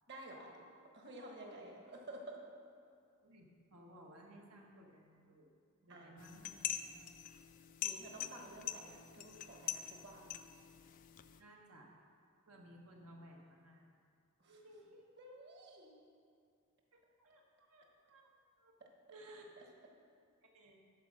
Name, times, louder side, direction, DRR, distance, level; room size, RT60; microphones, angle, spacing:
voice 1, 0.1-0.5 0.9-2.4 5.9-7.1 7.8-10.4 14.4-14.6 15.2-15.9 19.6-19.7, right 1 dB, 50° right, 0 dB, 1.4 m, -52 dB
voice 2, 3.7-5.5 5.8-6.6 11.4-11.9 12.5-13.9 14.5-15.0 16.9-17.4 17.7-18.2 18.6-18.7 19.1-19.7 20.4-20.8, right 1 dB, 90° right, -1 dB, 1.4 m, -58 dB
sound 1, 6.2-11.4, left 10 dB, 40° left, 0.3 m, -44 dB
11.0 x 4.7 x 6.5 m, 2.4 s
head